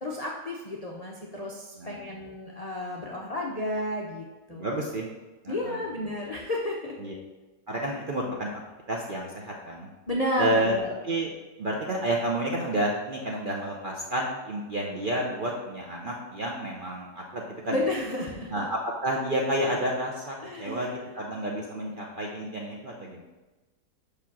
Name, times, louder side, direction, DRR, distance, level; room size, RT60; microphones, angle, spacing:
voice 1, 0.0-4.8 5.5-6.9 10.1-10.9 17.7-18.7 20.4-21.0, left 1 dB, 45° left, -2 dB, 0.4 m, -32 dB
voice 2, 4.5-5.1 5.4-5.8 7.0-7.1 7.7-8.6 8.9-9.9 10.4-10.7 11.0-11.3 11.6-17.8 18.5-23.2, right 1 dB, 50° right, -1 dB, 0.6 m, -30 dB
5.2 x 5.0 x 5.9 m, 1.1 s
omnidirectional pair, 1.7 m